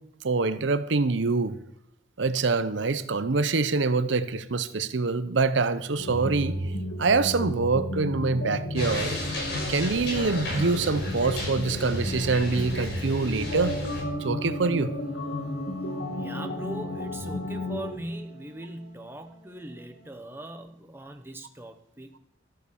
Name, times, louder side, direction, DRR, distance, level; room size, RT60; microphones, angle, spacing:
voice 1, 0.2-1.5 2.2-6.6 7.0-9.2 9.7-13.8 14.2-15.0, right 3 dB, 70° right, 13 dB, 0.7 m, -25 dB
sound 1, 6.0-17.9, left 1 dB, 75° left, 2.1 m, -33 dB
sound 2, 8.7-14.0, left 1 dB, 55° left, 6.5 m, -34 dB
Wind instrument woodwind instrument, 14.9-20.4, right 2 dB, 35° left, 5.0 m, -53 dB
voice 2, 16.1-22.2, right 1 dB, 10° right, 6 dB, 1.0 m, -40 dB
13.5 x 9.2 x 7.0 m, 0.75 s
head